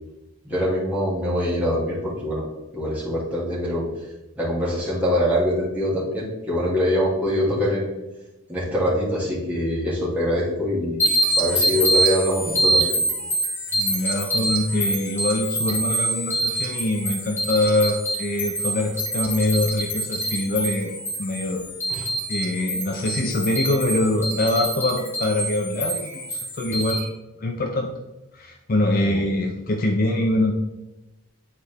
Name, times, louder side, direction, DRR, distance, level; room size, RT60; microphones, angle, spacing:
voice 1, 0.4-2.4 2.7-3.8 4.4-7.9 8.5-11.1 11.4-13.0 21.9-22.1 29.0-29.2, equal, 5° right, -8 dB, 2.1 m, -24 dB
sound 1, 11.0-27.0, right 1 dB, 10° left, 1.3 m, -26 dB
voice 2, 13.7-20.9 21.2-21.6 22.3-27.1 27.4-27.9 28.3-30.5, left 1 dB, 40° left, 2 dB, 0.5 m, -24 dB
9.7 x 4.2 x 3.4 m, 1.0 s
head